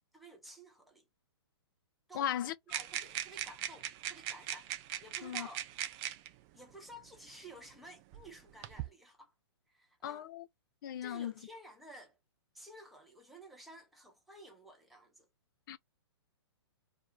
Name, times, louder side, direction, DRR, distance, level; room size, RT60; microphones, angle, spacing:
voice 1, 0.1-1.1 2.1-2.3 2.7-5.7 6.5-9.3 9.7-10.3 11.0-12.2 12.5-15.3, right 1 dB, ahead, 0.8 m, -53 dB
voice 2, 2.1-2.5 5.2-5.5 10.0-10.5 10.8-11.3 15.7-15.8, left 10 dB, 50° left, 0.4 m, -37 dB
sound 1, 2.7-6.3 7.3-7.4 8.1-8.9, right 11 dB, 30° right, 0.3 m, -40 dB
2.5 x 2.0 x 3.1 m
hypercardioid pair, 135°, 14 cm